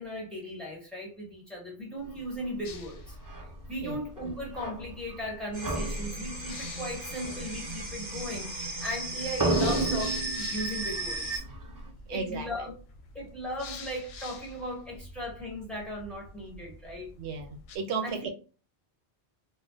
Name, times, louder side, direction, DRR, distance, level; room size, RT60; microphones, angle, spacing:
voice 1, 0.0-11.4 12.1-12.7 13.1-17.1 18.0-18.2, equal, ahead, 1.4 m, -37 dB
sound 1, 2.6-17.8, left 4 dB, 70° left, 0.8 m, -47 dB
sound 2, 3.1-3.5 4.2-5.3 5.6-9.0 9.3-11.9, right 2 dB, 30° right, 0.3 m, -33 dB
sound 3, 5.5-11.4, right 2 dB, 50° right, 1.0 m, -36 dB
voice 2, 12.1-12.7 17.2-18.3, right 5 dB, 80° right, 0.9 m, -34 dB
3.8 x 2.2 x 2.3 m
omnidirectional pair, 1.1 m